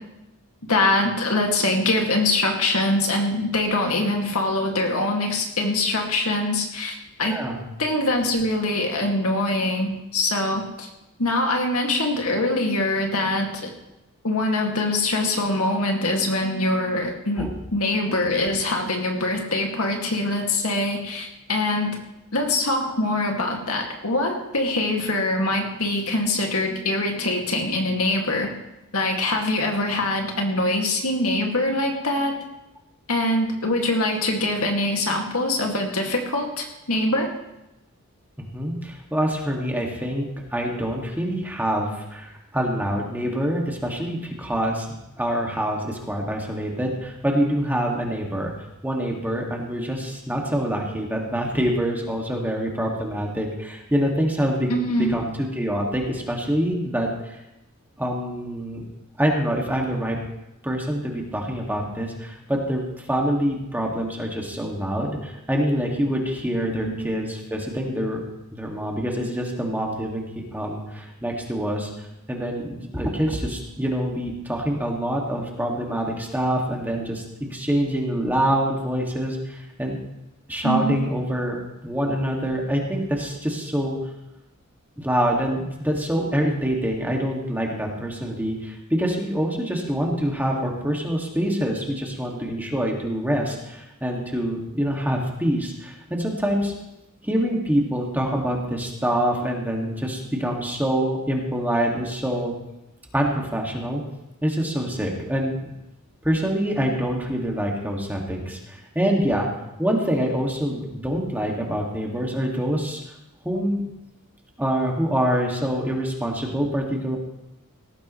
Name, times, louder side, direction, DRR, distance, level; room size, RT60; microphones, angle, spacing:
voice 1, 0.6-7.4 7.8-10.9 11.2-13.7 14.2-22.0 22.3-28.5 28.9-32.3 33.1-37.3 54.7-55.1 66.8-66.9 80.6-81.0, left 2 dB, 75° left, 1 dB, 2.2 m, -23 dB
voice 2, 7.2-7.7 17.4-17.5 38.4-44.9 45.2-48.5 48.8-57.4 58.0-58.8 59.2-60.2 60.6-68.2 68.5-71.9 72.3-77.2 77.5-80.0 80.5-81.6 81.8-84.0 85.0-96.7 97.2-102.5 103.1-104.0 104.4-105.7 106.2-109.5 109.8-113.0 113.4-113.8 114.6-117.2, equal, 10° right, -1 dB, 2.1 m, -25 dB
18.0 x 14.0 x 3.2 m, 0.92 s
head